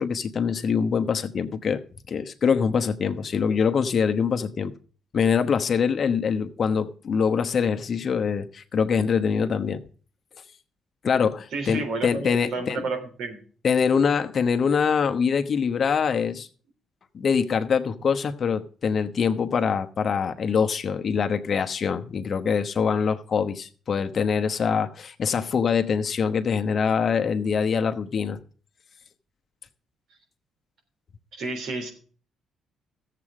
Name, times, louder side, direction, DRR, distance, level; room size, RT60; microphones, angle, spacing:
voice 1, 0.0-1.8 2.1-4.7 5.1-9.8 11.0-12.9 13.6-16.5 17.1-28.4, left 6 dB, 50° left, 1.0 m, -24 dB
voice 2, 11.5-13.4 31.3-31.9, right 3 dB, 75° right, 3.4 m, -31 dB
14.0 x 7.7 x 4.9 m
cardioid pair, 90°, 0 cm